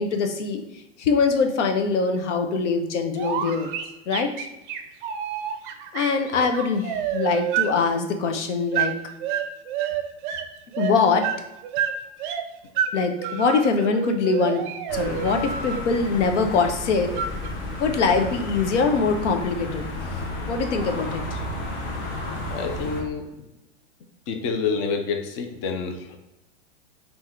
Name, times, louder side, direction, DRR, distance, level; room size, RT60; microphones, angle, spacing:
voice 1, 0.0-3.7 4.1-4.5 5.9-9.0 10.8-11.3 12.9-14.7 14.9-17.1 17.8-21.4, left 4 dB, 90° left, 6 dB, 0.7 m, -23 dB
sound 1, 3.2-7.7 8.7-8.9 9.2-10.4 10.7-12.4 12.7-12.9 13.2-15.8 17.1-17.5, right 9 dB, 45° right, 0.5 m, -28 dB
sound 2, 14.9-23.0, left 1 dB, 50° left, 1.0 m, -32 dB
voice 2, 22.5-23.3 24.3-26.2, left 5 dB, 30° left, 4 dB, 0.4 m, -28 dB
3.6 x 2.7 x 4.3 m, 0.95 s
supercardioid pair, 145°, 35 cm